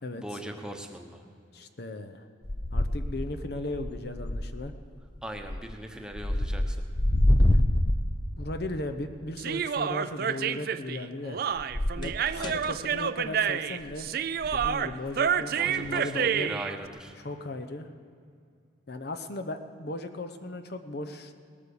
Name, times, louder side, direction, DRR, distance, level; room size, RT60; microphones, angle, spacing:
voice 1, 0.1-1.2 5.2-6.8 12.3-12.6 15.6-17.2, right 1 dB, 5° right, 3 dB, 1.0 m, -40 dB
voice 2, 1.5-2.2 2.7-4.7 8.4-11.4 12.0-14.1 14.5-16.5 17.2-17.9 18.9-21.4, left 2 dB, 60° left, 8 dB, 0.8 m, -37 dB
sound 1, 2.4-3.4 3.7-4.7 5.3-5.8 6.1-8.6 11.6-12.7 13.8-14.1 14.4-14.8 15.9-16.0, left 1 dB, 25° left, 0.5 m, -26 dB
Human voice, 9.4-16.7, right 7 dB, 55° right, 0.4 m, -29 dB
18.5 x 8.6 x 7.0 m, 2.3 s
head